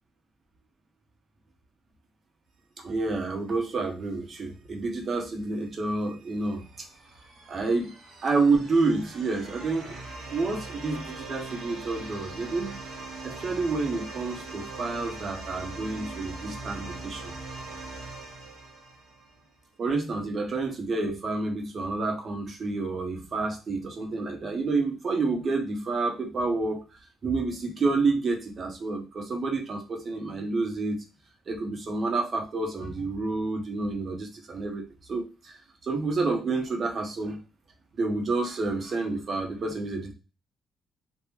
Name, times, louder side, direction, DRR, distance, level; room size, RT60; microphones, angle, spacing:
voice 1, 2.8-6.9 7.5-7.9 8.2-9.9 10.3-12.8 13.2-17.3 19.8-26.8 27.2-31.0 31.5-35.6 35.8-37.4 37.9-40.1, right 3 dB, 45° right, 2 dB, 1.0 m, -29 dB
sound 1, 5.6-19.5, right 2 dB, 90° right, 1.3 m, -41 dB
3.6 x 2.5 x 2.9 m, 0.31 s
cardioid pair, 90°, 0 cm